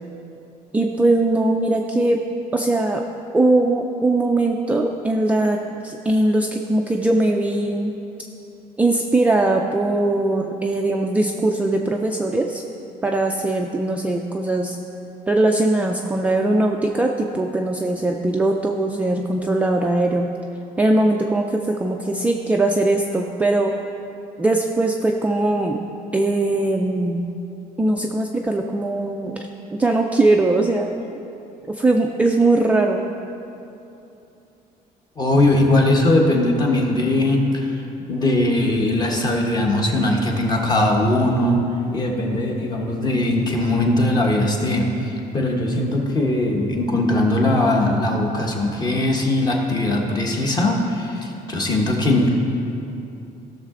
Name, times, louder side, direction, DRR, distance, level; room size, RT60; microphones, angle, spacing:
voice 1, 0.7-2.2 2.5-3.0 3.3-7.9 8.8-12.6 13.0-14.8 15.3-20.3 20.8-23.7 24.4-25.8 26.1-27.3 27.8-30.9 31.7-33.1, right 2 dB, 10° right, 1 dB, 0.3 m, -20 dB
voice 2, 35.2-37.8 38.1-41.6 41.9-52.3, left 1 dB, 25° left, 0 dB, 1.1 m, -20 dB
16.0 x 6.5 x 3.7 m, 2.8 s
cardioid pair, 180°, 16 cm